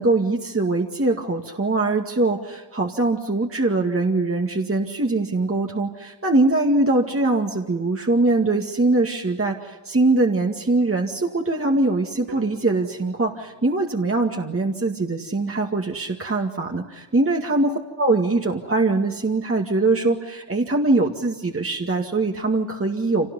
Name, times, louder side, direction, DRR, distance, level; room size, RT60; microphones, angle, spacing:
voice 1, 0.0-23.3, right 2 dB, 30° right, 1 dB, 2.2 m, -22 dB
sound 1, 12.3-16.3, right 3 dB, 60° right, 6.0 m, -48 dB
26.0 x 18.5 x 9.9 m, 1.2 s
cardioid pair, 50°, 47 cm